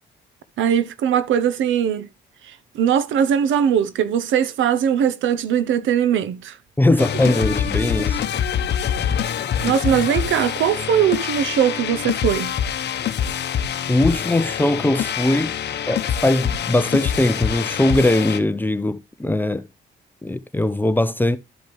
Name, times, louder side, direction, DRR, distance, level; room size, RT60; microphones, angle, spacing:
voice 1, 0.6-2.1 2.4-6.6 9.6-12.5, right 9 dB, 80° right, 0.8 m, -20 dB
voice 2, 6.8-8.2 13.9-15.5 15.9-19.7 20.2-21.4, left 1 dB, 10° left, 0.7 m, -20 dB
sound 1, 7.0-18.4, left 9 dB, 60° left, 0.9 m, -25 dB
12.0 x 5.2 x 3.1 m
cardioid pair, 90°, 20 cm